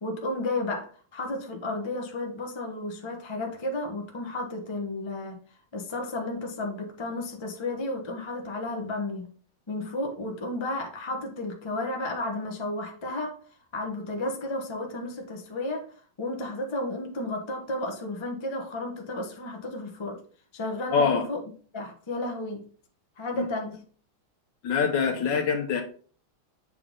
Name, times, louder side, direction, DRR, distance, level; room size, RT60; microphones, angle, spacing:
voice 1, 0.0-5.4 5.7-9.3 9.7-13.4 13.7-15.8 16.2-20.2 20.5-21.4 21.7-22.7 23.2-23.8, left 2 dB, 30° left, 0.5 m, -32 dB
voice 2, 20.9-21.3 23.3-23.5 24.6-25.8, left 6 dB, 60° left, 1.4 m, -24 dB
7.6 x 3.9 x 3.7 m
omnidirectional pair, 2.4 m